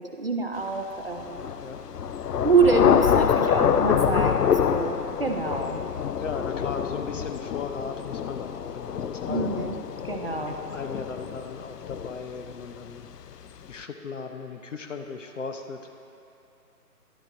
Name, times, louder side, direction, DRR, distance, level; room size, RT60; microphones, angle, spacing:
voice 1, 0.0-1.4 2.4-5.8 9.3-9.8 10.0-10.6, right 4 dB, 40° right, 3 dB, 0.5 m, -26 dB
Thunder / Rain, 1.2-12.8, left 8 dB, 85° left, 0.5 m, -26 dB
voice 2, 6.2-9.7 10.5-13.1 13.7-15.8, left 5 dB, 50° left, 6 dB, 0.8 m, -37 dB
11.5 x 7.6 x 3.8 m, 2.8 s
figure-of-eight pair, 160°, 47 cm